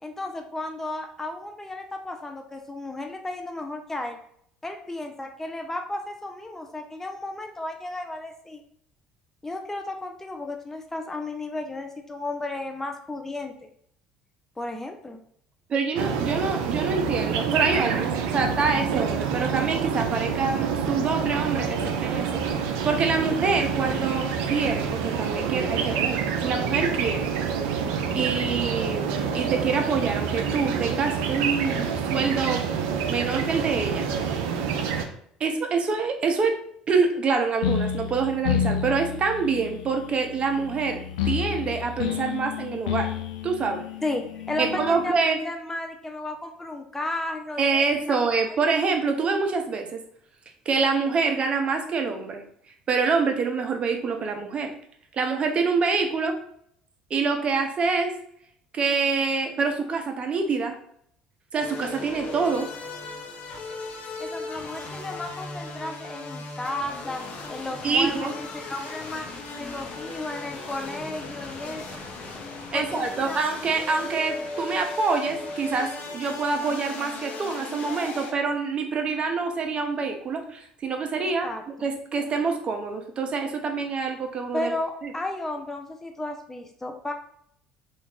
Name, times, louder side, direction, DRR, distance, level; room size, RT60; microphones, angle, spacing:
voice 1, 0.0-4.2 4.6-8.6 9.4-13.7 14.6-15.2 44.0-48.2 64.2-67.2 67.5-69.3 69.6-71.9 72.7-73.4 81.4-81.9 84.5-87.1, left 2 dB, 10° left, 4 dB, 0.5 m, -33 dB
voice 2, 15.7-22.3 22.6-27.2 28.1-32.6 33.0-34.1 34.3-34.4 35.4-36.6 36.9-43.1 43.4-43.8 44.6-45.4 47.6-50.0 50.7-52.4 52.9-54.7 55.1-56.3 57.1-58.1 58.7-60.8 61.5-62.7 67.8-68.3 72.7-81.5 81.8-84.7 85.0-85.1, right 4 dB, 40° right, 4 dB, 0.7 m, -26 dB
sound 1, 16.0-35.1, right 6 dB, 75° right, 0.4 m, -27 dB
sound 2, 37.6-45.1, left 8 dB, 85° left, 0.3 m, -30 dB
sound 3, 61.6-78.3, left 3 dB, 50° left, 0.8 m, -37 dB
3.0 x 2.4 x 3.6 m, 0.66 s
hypercardioid pair, 75°, 3 cm